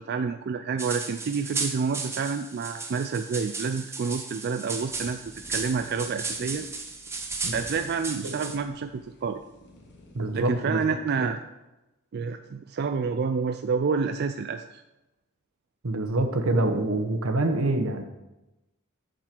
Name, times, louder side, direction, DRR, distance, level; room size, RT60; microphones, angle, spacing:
voice 1, 0.0-6.7 7.5-8.9 9.2-9.4 10.3-11.4 12.1-14.8, right 5 dB, 50° right, 7 dB, 0.4 m, -28 dB
sound 1, 0.8-8.6, right 3 dB, 10° right, 0.9 m, -35 dB
sound 2, 4.9-10.7, left 1 dB, 55° left, 1.4 m, -51 dB
voice 2, 10.1-10.8 11.2-11.3 15.8-18.0, right 2 dB, 80° right, 6 dB, 1.0 m, -26 dB
9.1 x 6.6 x 4.5 m, 0.99 s
head